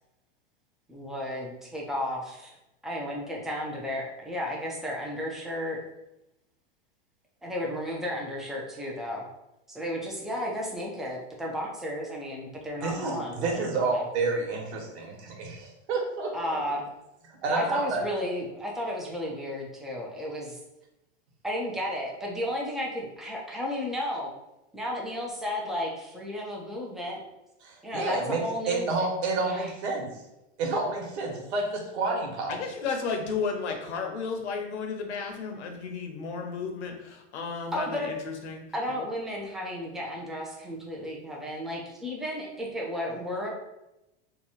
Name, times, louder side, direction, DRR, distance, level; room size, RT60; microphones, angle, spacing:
voice 1, 0.9-2.6 2.8-5.8 7.4-9.3 9.7-14.0 16.3-16.9 17.5-20.6 21.4-24.3 24.7-27.2 27.8-28.9 29.4-29.7 37.7-38.1 38.7-43.5, left 1 dB, ahead, -2 dB, 0.5 m, -33 dB
voice 2, 12.8-16.3 17.4-18.0 27.6-28.4 28.7-30.1 30.6-32.5, right 3 dB, 70° right, 0 dB, 1.3 m, -29 dB
voice 3, 32.5-38.6, left 5 dB, 80° left, 3 dB, 0.9 m, -33 dB
2.9 x 2.3 x 4.1 m, 0.92 s
supercardioid pair, 130°, 34 cm